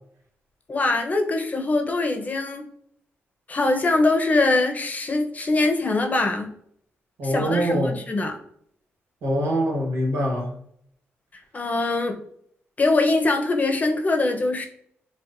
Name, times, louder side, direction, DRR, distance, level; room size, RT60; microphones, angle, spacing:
voice 1, 0.7-2.6 3.5-6.5 7.2-8.4 11.5-12.2 12.8-14.7, left 2 dB, 35° left, 4 dB, 0.8 m, -23 dB
voice 2, 7.2-7.9 9.2-10.5, equal, 80° right, -2 dB, 1.5 m, -23 dB
7.2 x 2.4 x 2.6 m, 0.68 s
cardioid pair, 95°, 5 cm